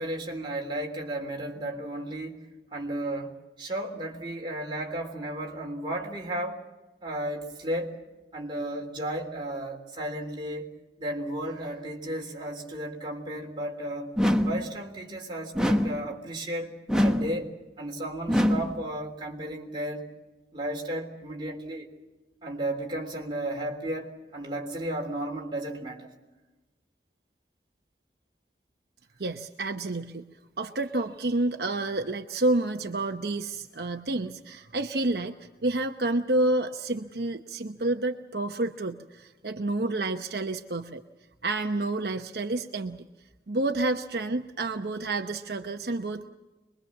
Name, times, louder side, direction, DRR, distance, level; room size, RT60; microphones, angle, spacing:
voice 1, 0.0-2.5 2.7-6.7 7.0-8.0 8.3-10.7 11.0-14.1 14.4-17.5 17.8-20.1 20.5-21.9 22.4-26.1, right 1 dB, 25° right, 0 dB, 3.4 m, -34 dB
sound 1, 14.2-14.7 15.6-16.1 16.9-17.4 18.3-18.8, equal, 5° right, 1.2 m, -24 dB
voice 2, 29.2-30.2 30.6-35.3 35.6-41.0 41.4-43.0 43.5-46.3, right 2 dB, 65° right, 5 dB, 0.9 m, -29 dB
24.5 x 22.0 x 7.3 m, 1.1 s
head